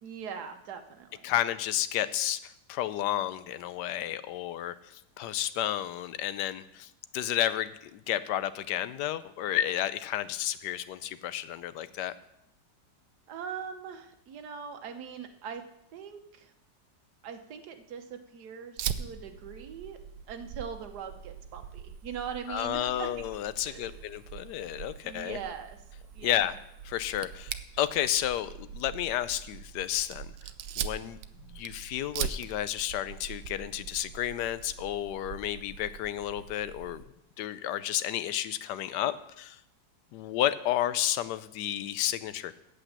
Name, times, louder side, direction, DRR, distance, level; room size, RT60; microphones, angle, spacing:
voice 1, 0.0-1.4 13.3-15.6 15.9-16.5 17.2-20.0 20.3-23.1 23.6-24.0 25.0-25.8 26.1-26.5, right 7 dB, 65° right, 6 dB, 1.5 m, -41 dB
voice 2, 1.2-12.1 22.5-25.4 26.2-26.5 26.8-30.3 30.8-31.2 31.5-37.0 37.4-39.6 40.1-42.6, left 12 dB, 75° left, 14 dB, 1.2 m, -31 dB
Fire, 18.8-37.0, right 9 dB, 90° right, 1.3 m, -41 dB
8.5 x 7.9 x 7.3 m, 0.79 s
omnidirectional pair, 1.9 m